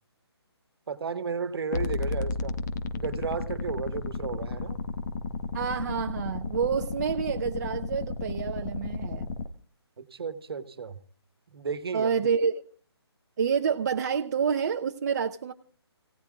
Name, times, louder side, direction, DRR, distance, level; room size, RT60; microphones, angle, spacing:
voice 1, 0.9-2.5 2.9-4.8 10.0-11.0 11.5-12.1, right 5 dB, 60° right, 1.4 m, -33 dB
sound 1, 1.7-9.5, left 3 dB, 40° left, 1.0 m, -33 dB
voice 2, 5.5-9.3 11.9-12.6 13.4-15.5, right 6 dB, 40° right, 0.7 m, -28 dB
29.5 x 17.0 x 2.3 m
hypercardioid pair, 160°, 14 cm